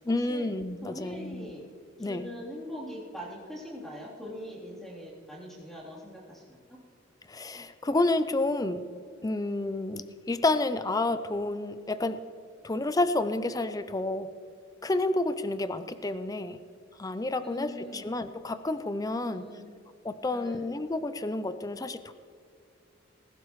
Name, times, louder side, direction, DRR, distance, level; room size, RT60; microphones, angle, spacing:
voice 1, 0.1-1.5 2.0-2.3 7.3-8.8 9.2-12.2 12.6-14.3 14.8-16.6 17.0-19.5 20.0-22.1, left 2 dB, 20° left, 12 dB, 0.5 m, -30 dB
voice 2, 0.8-1.6 2.0-6.8 17.4-18.1 19.2-19.7 20.3-20.6, equal, ahead, -6 dB, 3.4 m, -42 dB
20.0 x 12.0 x 3.1 m, 2.4 s
head